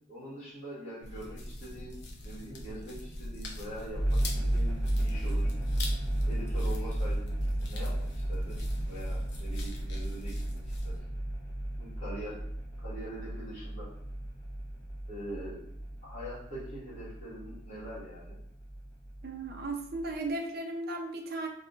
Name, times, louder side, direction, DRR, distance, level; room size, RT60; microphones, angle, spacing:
voice 1, 0.1-2.0 2.2-5.5 6.3-7.3 7.7-8.6 8.9-10.6 10.8-10.9 11.8-12.4 12.8-13.9 15.1-15.6 16.0-18.4, right 1 dB, 35° left, -9 dB, 1.5 m, -43 dB
sound 1, 1.0-11.0, left 1 dB, 55° left, 0.6 m, -43 dB
sound 2, 3.9-20.3, right 1 dB, 15° left, 0.7 m, -34 dB
voice 2, 19.2-21.5, right 2 dB, 50° right, 3 dB, 0.5 m, -35 dB
3.9 x 2.8 x 2.4 m, 0.72 s
head